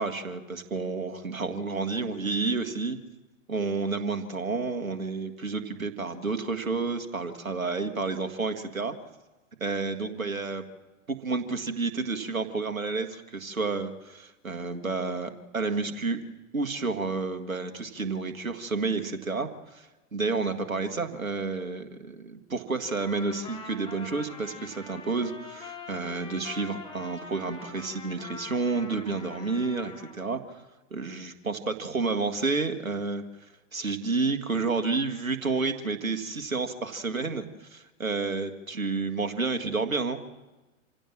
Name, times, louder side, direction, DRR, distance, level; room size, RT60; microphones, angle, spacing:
voice 1, 0.0-3.0 3.5-8.9 9.6-10.7 11.1-16.2 16.5-30.4 30.9-33.2 33.7-40.2, right 4 dB, 80° right, 8 dB, 1.9 m, -30 dB
Trumpet, 23.0-30.2, left 4 dB, 10° left, 3.4 m, -44 dB
26.0 x 16.0 x 7.5 m, 1.1 s
figure-of-eight pair, 105°, 41 cm